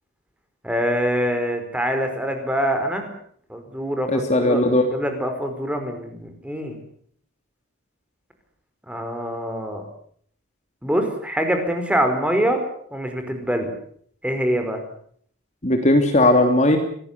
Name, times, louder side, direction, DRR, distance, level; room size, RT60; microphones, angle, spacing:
voice 1, 0.6-3.1 3.5-4.6 4.9-6.7 8.9-9.8 10.8-12.6 12.9-13.7 14.2-14.8, equal, 5° right, 6 dB, 4.9 m, -24 dB
voice 2, 4.1-4.8 15.6-16.8, left 1 dB, 35° left, 5 dB, 3.1 m, -17 dB
25.5 x 19.0 x 8.3 m, 0.63 s
head